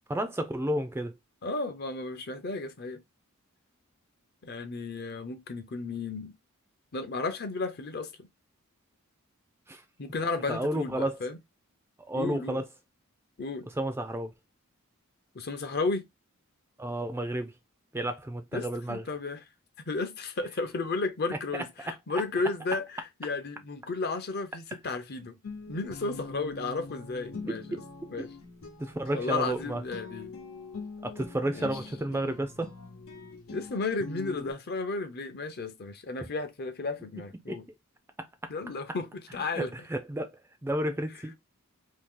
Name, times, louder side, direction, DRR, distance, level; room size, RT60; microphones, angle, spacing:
voice 1, 0.1-1.1 9.7-9.8 10.5-11.2 12.1-12.6 13.8-14.3 16.8-17.5 17.9-19.0 27.5-27.8 28.2-28.3 28.8-29.8 31.0-32.7 37.5-37.6 39.5-40.3 40.6-41.3, right 1 dB, 10° right, 0.4 m, -31 dB
voice 2, 1.4-3.0 4.4-6.3 6.9-8.3 10.0-11.4 12.1-12.6 13.4-13.7 15.3-16.0 18.5-19.4 19.8-25.3 25.7-27.8 28.1-28.3 29.1-30.4 31.5-31.7 33.5-37.7 38.5-39.7, left 3 dB, 45° left, 0.6 m, -33 dB
Guitar, 25.4-34.5, left 4 dB, 70° left, 0.9 m, -43 dB
2.8 x 2.8 x 3.7 m
head